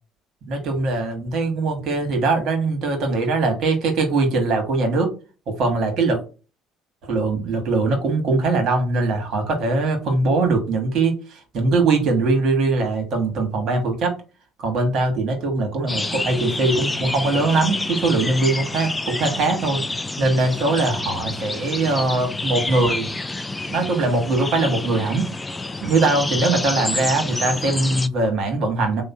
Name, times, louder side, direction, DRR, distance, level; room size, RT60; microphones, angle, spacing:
voice 1, 0.5-5.1 5.5-6.2 7.0-14.2 14.6-23.1 23.7-25.3 25.8-29.0, right 3 dB, 55° right, 4 dB, 1.3 m, -21 dB
sound 1, 15.9-28.1, left 2 dB, 15° left, 0.3 m, -28 dB
3.1 x 2.1 x 4.1 m, 0.33 s
hypercardioid pair, 65°, 0 cm